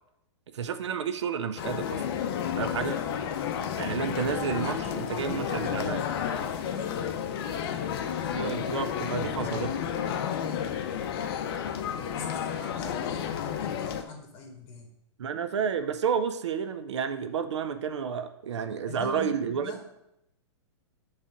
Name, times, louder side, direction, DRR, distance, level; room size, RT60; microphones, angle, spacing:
voice 1, 0.5-2.0 2.6-3.0 3.8-6.0 8.3-9.7 15.2-19.7, right 7 dB, 75° right, 9 dB, 0.6 m, -31 dB
sound 1, 1.6-14.0, left 8 dB, 55° left, 0.6 m, -31 dB
voice 2, 4.2-8.5 11.7-14.9 18.9-19.8, left 3 dB, 35° left, 2 dB, 1.6 m, -43 dB
7.3 x 3.3 x 5.0 m, 0.83 s
hypercardioid pair, 115°, 15 cm